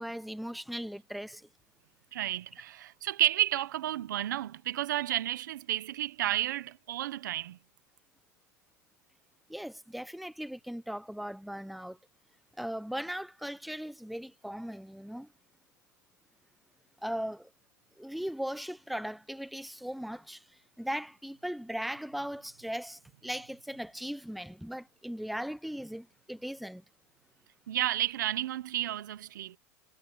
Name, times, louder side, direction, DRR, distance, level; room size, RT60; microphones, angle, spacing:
voice 1, 0.0-1.5 9.5-12.0 12.6-15.3 17.0-17.5 18.0-20.4 20.8-26.8, equal, ahead, 1.0 m, -38 dB
voice 2, 2.1-7.6 27.7-29.6, right 13 dB, 90° right, 1.2 m, -31 dB
supercardioid pair, 130°, 10 cm